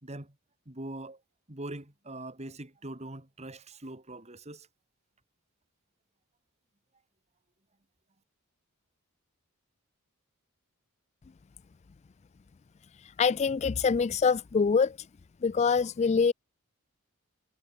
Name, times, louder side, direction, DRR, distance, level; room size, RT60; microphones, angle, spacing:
voice 1, 0.0-0.3 0.7-1.2 1.5-4.7, right 1 dB, 30° right, 2.5 m, -42 dB
voice 2, 13.2-15.0 15.4-16.3, left 5 dB, 30° left, 0.3 m, -25 dB
head